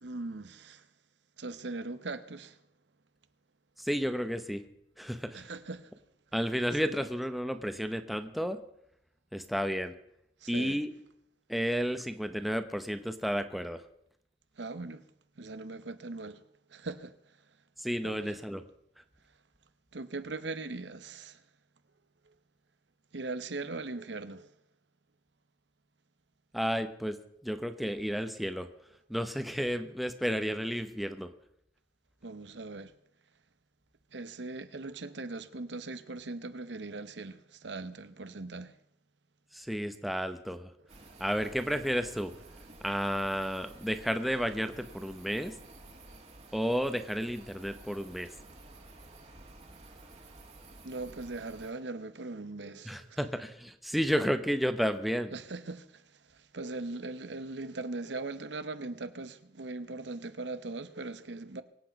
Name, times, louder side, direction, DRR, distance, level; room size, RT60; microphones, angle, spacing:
voice 1, 0.0-0.8 1.4-2.6 5.3-5.9 10.4-10.8 14.6-15.0 15.4-16.4 16.7-17.1 18.0-18.4 19.9-21.4 23.1-24.5 32.2-32.9 34.1-38.7 50.8-53.2 55.3-55.9 56.5-61.6, right 3 dB, 80° right, 1.0 m, -40 dB
voice 2, 3.8-4.6 5.0-5.4 6.3-8.6 9.3-9.9 10.5-10.9 11.5-13.8 17.8-18.7 26.5-27.2 27.4-28.7 29.1-31.3 39.5-40.7 41.2-42.3 42.8-45.6 46.5-48.3 52.8-55.3, equal, ahead, 0.9 m, -32 dB
sound 1, 40.9-51.7, right 2 dB, 40° right, 2.2 m, -52 dB
23.5 x 8.5 x 5.2 m
head